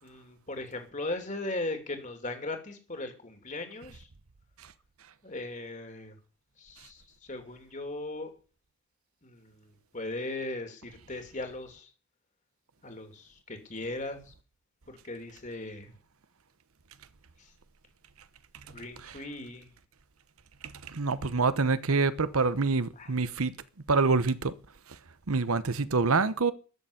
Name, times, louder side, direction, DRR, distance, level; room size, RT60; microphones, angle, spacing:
voice 1, 0.0-4.1 5.2-6.2 6.6-8.3 9.2-11.9 12.8-14.3 14.9-15.9 17.4-17.5 18.7-19.7 23.0-23.1, left 2 dB, 35° left, 2.8 m, -38 dB
voice 2, 20.6-23.5 23.9-24.5 24.9-25.0 25.3-26.5, right 4 dB, 75° right, 1.0 m, -26 dB
13.5 x 6.9 x 9.9 m
head